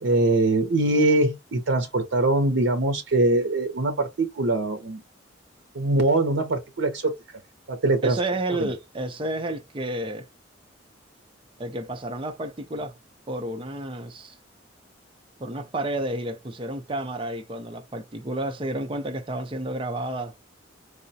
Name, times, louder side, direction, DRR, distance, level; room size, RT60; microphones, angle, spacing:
voice 1, 0.0-5.0 5.7-7.4 7.7-8.2 8.5-8.7, right 2 dB, 75° right, 0.6 m, -23 dB
voice 2, 8.0-10.3 11.6-13.0 13.3-14.4 15.4-20.3, right 1 dB, 25° right, 0.6 m, -31 dB
4.7 x 2.1 x 2.6 m
head